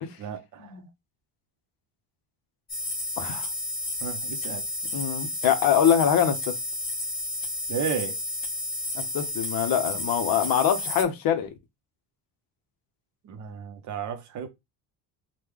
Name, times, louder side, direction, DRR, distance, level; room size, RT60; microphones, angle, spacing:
voice 1, 0.2-0.8 4.0-4.7 7.7-8.2 13.2-14.5, right 7 dB, 45° right, 0.6 m, -33 dB
sound 1, 2.7-11.0, left 2 dB, 25° left, 1.2 m, -32 dB
voice 2, 3.2-3.5 4.9-6.6 8.9-11.5, left 8 dB, 55° left, 0.7 m, -24 dB
3.1 x 2.2 x 3.5 m
cardioid pair, 160°, 42 cm